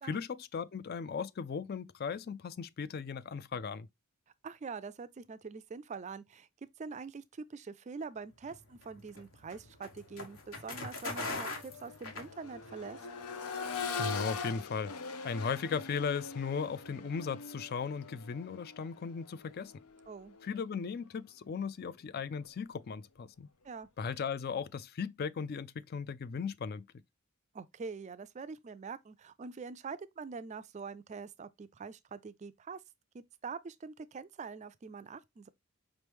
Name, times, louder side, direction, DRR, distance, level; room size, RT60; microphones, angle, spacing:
voice 1, 0.0-3.9 14.0-14.9 15.2-19.7 20.4-23.5 24.0-26.8, left 6 dB, 45° left, 0.3 m, -37 dB
voice 2, 4.4-6.5 6.8-13.0 20.1-20.4 23.6-23.9 27.5-32.8 33.1-35.5, right 5 dB, 30° right, 0.3 m, -44 dB
sound 1, 8.4-12.9, left 2 dB, 65° left, 1.5 m, -41 dB
Accelerating revving vroom, 10.1-10.3 10.7-20.6 22.3-22.4, left 5 dB, 90° left, 0.7 m, -42 dB
5.2 x 3.1 x 3.3 m
head